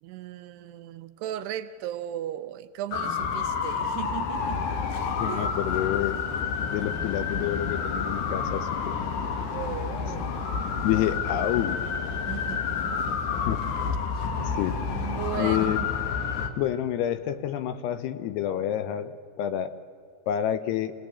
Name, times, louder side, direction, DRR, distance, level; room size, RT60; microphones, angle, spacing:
voice 1, 0.0-4.6 5.3-5.5 9.5-10.5 12.3-13.4 14.3-14.6 14.9-15.9, right 12 dB, 80° right, 9 dB, 2.6 m, -37 dB
sound 1, 2.9-16.5, left 6 dB, 60° left, 2.4 m, -29 dB
voice 2, 5.2-6.2 6.7-8.9 10.8-11.8 13.5-13.6 14.4-14.7 15.4-15.8 16.6-19.7 20.3-20.9, left 11 dB, 75° left, 12 dB, 2.6 m, -28 dB
26.0 x 18.0 x 8.3 m, 2.2 s
omnidirectional pair, 5.1 m